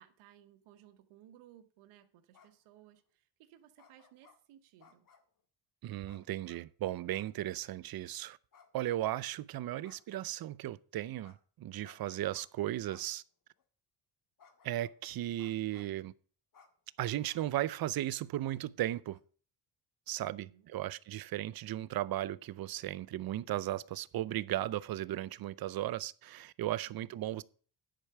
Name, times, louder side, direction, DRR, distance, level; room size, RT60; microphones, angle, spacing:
voice 1, 0.0-5.1 20.2-20.7 26.9-27.2, right 12 dB, 85° right, 1.2 m, -60 dB
sound 1, 2.3-2.7 3.8-4.4 4.8-5.3 6.0-6.6 7.1-7.4 7.6-7.7 8.5-9.2 9.8-10.2 11.2-11.4 11.8-12.4 12.9-13.0 13.6-13.7 14.4-15.0 15.4-16.0 16.5-16.7 17.3-17.4 17.8-17.9 18.2-18.3 18.9-19.2, left 6 dB, 40° left, 1.7 m, -62 dB
voice 2, 5.8-8.4 8.7-13.2 14.6-16.1 17.0-19.2 20.1-27.4, right 14 dB, 50° right, 0.6 m, -36 dB
10.5 x 4.7 x 6.7 m
cardioid pair, 90°, 48 cm